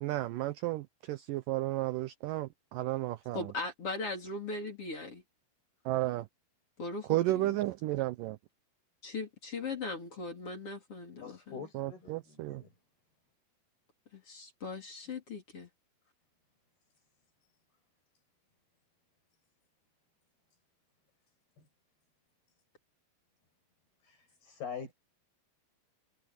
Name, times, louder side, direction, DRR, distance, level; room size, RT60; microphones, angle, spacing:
voice 1, 0.0-3.5 5.9-6.3 7.1-8.4 11.7-12.6, right 16 dB, 90° right, 1.9 m, -33 dB
voice 2, 3.3-5.2 6.8-7.5 9.0-11.6 14.1-15.7, left 3 dB, 35° left, 4.5 m, -39 dB
voice 3, 11.2-12.7 21.6-21.7 24.0-24.9, left 6 dB, 70° left, 8.9 m, -45 dB
omnidirectional pair, 4.7 m